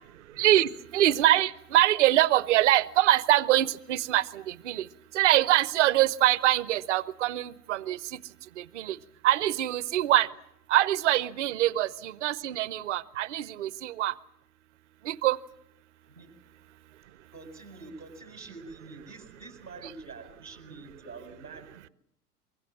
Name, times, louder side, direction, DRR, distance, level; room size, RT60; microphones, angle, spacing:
voice 1, 0.4-4.9 5.1-8.0 8.6-9.0 9.2-10.3 10.7-14.1 15.1-15.4, right 14 dB, 50° right, 20 dB, 0.9 m, -24 dB
voice 2, 17.0-21.9, right 3 dB, 85° right, 5 dB, 4.9 m, -47 dB
24.5 x 23.0 x 7.4 m, 0.79 s
figure-of-eight pair, 95°, 46 cm